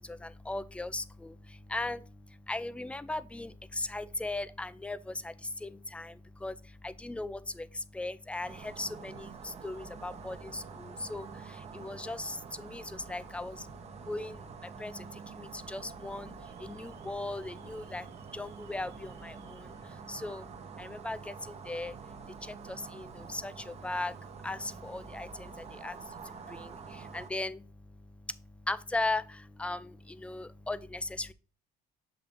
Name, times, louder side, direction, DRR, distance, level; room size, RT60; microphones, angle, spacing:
voice 1, 0.0-13.7 14.0-20.5 20.8-22.0 22.4-31.3, left 2 dB, 5° left, 0.4 m, -38 dB
sound 1, 8.4-27.3, right 6 dB, 40° right, 0.9 m, -47 dB
Alarm, 16.4-23.4, right 5 dB, 75° right, 1.2 m, -59 dB
7.5 x 2.8 x 5.2 m
cardioid pair, 110°, 17 cm